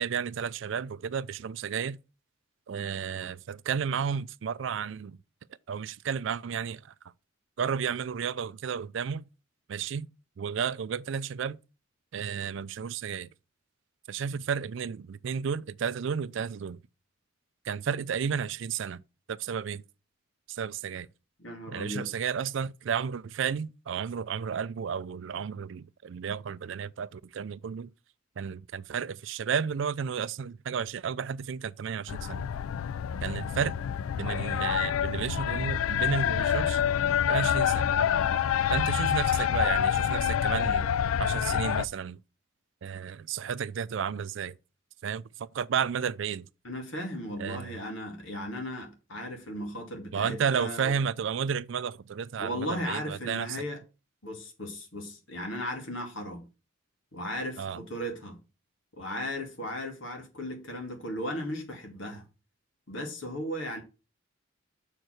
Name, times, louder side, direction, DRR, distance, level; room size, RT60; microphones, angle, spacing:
voice 1, 0.0-2.0 2.7-5.2 5.7-6.9 7.6-9.2 9.7-10.1 10.4-11.6 12.1-13.3 14.1-16.8 17.6-19.0 19.3-19.8 20.5-21.1 21.7-27.9 28.4-32.5 33.2-33.7 34.2-36.8 37.3-37.9 38.7-40.9 41.2-42.2 42.8-44.6 45.0-46.5 47.4-47.7 50.1-53.6 57.6-57.8, right 7 dB, 65° right, 0.4 m, -32 dB
voice 2, 21.4-22.1 46.6-51.0 52.4-53.8 54.2-56.4 57.1-58.4 58.9-62.3 62.9-63.8, equal, 65° left, 2.2 m, -36 dB
sound 1, 32.1-41.9, left 9 dB, 85° left, 0.3 m, -27 dB
6.5 x 4.6 x 6.3 m
head